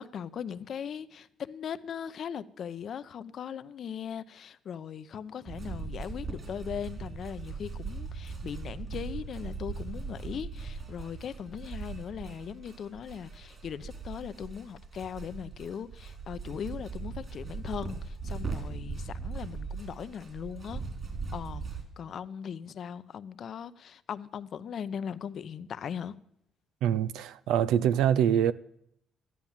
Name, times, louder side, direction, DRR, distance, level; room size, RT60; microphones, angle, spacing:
voice 1, 0.0-20.8 21.3-21.6 22.0-26.2, left 8 dB, 60° left, 0.7 m, -39 dB
sound 1, 5.5-21.8, right 4 dB, 40° right, 3.7 m, -39 dB
voice 2, 26.8-28.5, right 9 dB, 85° right, 0.5 m, -24 dB
13.5 x 11.0 x 7.3 m
cardioid pair, 75°, 0 cm